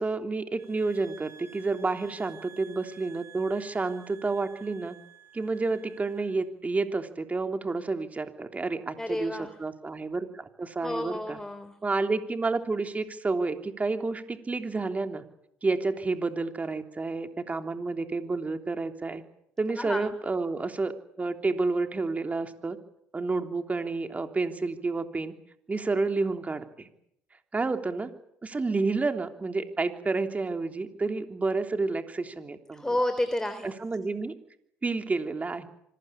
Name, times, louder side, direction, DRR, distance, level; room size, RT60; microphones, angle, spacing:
voice 1, 0.0-4.9 5.3-11.4 11.8-15.2 15.6-19.2 19.6-22.8 23.1-25.3 25.7-26.9 27.5-28.1 28.4-32.9 33.6-34.3 34.8-35.7, right 3 dB, 25° right, 6 dB, 3.3 m, -30 dB
sound 1, 0.6-6.4, right 8 dB, 45° right, 5.0 m, -52 dB
voice 2, 9.0-9.5 10.8-11.7 19.8-20.1 32.7-33.7, left 1 dB, 10° left, 9 dB, 3.6 m, -30 dB
25.5 x 20.0 x 8.6 m, 0.74 s
supercardioid pair, 75°, 6 cm